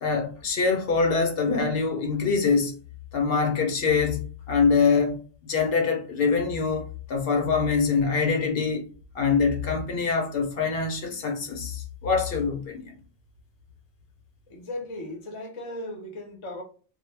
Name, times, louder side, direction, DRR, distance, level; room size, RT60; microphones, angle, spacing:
voice 1, 0.0-2.7 3.1-8.8 9.1-12.9, left 5 dB, 70° left, 0.8 m, -24 dB
voice 2, 14.5-16.6, left 1 dB, 35° left, 0.5 m, -37 dB
2.0 x 2.0 x 3.2 m
omnidirectional pair, 1.1 m